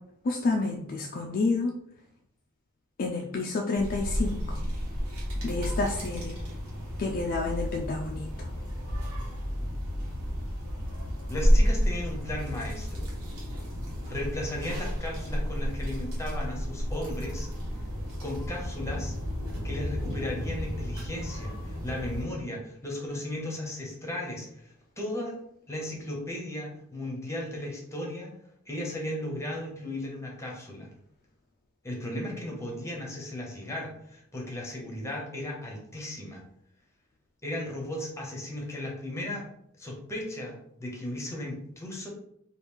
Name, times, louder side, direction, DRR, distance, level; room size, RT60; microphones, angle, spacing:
voice 1, 0.2-1.7 3.0-4.6 5.4-6.4 7.0-8.5, left 3 dB, 40° left, 2 dB, 0.3 m, -29 dB
sound 1, 3.7-22.2, equal, 80° right, 1.2 m, -31 dB
voice 2, 11.3-13.1 14.1-17.5 18.2-19.2 19.6-25.4 25.7-28.3 28.7-30.9 31.8-36.4 37.4-39.5 39.8-42.1, left 1 dB, 15° left, -1 dB, 0.8 m, -36 dB
3.0 x 2.4 x 3.5 m, 0.72 s
head